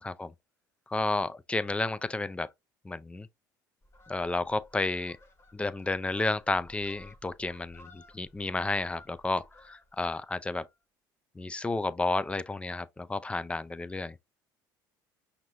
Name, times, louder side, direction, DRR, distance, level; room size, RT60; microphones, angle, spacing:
voice 1, 0.0-0.3 0.9-2.5 2.8-3.3 4.1-5.2 5.5-10.7 11.4-14.1, left 3 dB, 10° left, 0.4 m, -31 dB
Fowl, 3.8-10.2 10.5-10.7, left 2 dB, 25° left, 1.4 m, -56 dB
5.9 x 2.7 x 2.7 m
hypercardioid pair, 70°, 10 cm